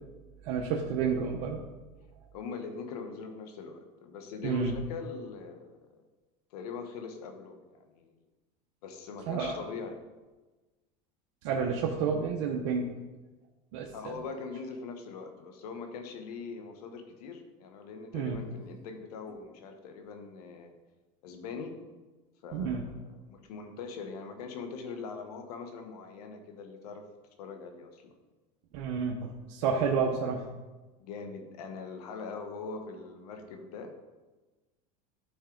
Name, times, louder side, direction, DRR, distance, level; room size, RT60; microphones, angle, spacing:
voice 1, 0.4-1.6 4.4-4.8 9.3-9.6 11.4-12.9 13.7-14.2 18.1-18.4 22.5-22.8 28.7-30.5, right 5 dB, 75° right, 0 dB, 1.0 m, -30 dB
voice 2, 2.3-6.0 6.5-8.2 8.8-10.0 13.9-20.7 21.2-21.7 22.4-22.8 23.2-27.0 27.4-28.2 31.0-33.9, left 5 dB, 90° left, 5 dB, 1.3 m, -42 dB
12.0 x 4.5 x 3.9 m, 1.2 s
supercardioid pair, 110°, 19 cm